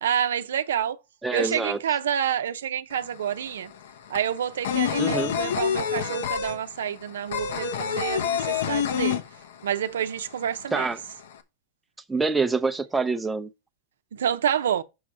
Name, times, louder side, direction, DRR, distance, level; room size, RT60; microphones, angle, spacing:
voice 1, 0.0-1.0 1.3-3.7 4.1-9.2 9.6-10.9 14.1-14.8, right 9 dB, 85° right, 0.7 m, -28 dB
voice 2, 1.2-1.8 5.0-5.3 10.7-11.0 12.1-13.5, right 3 dB, 5° right, 0.6 m, -25 dB
sound 1, 2.9-3.0 3.3-9.8 10.1-10.2 10.5-11.3, left 8 dB, 75° left, 1.0 m, -27 dB
6.3 x 5.4 x 4.7 m
hypercardioid pair, 135°, 0 cm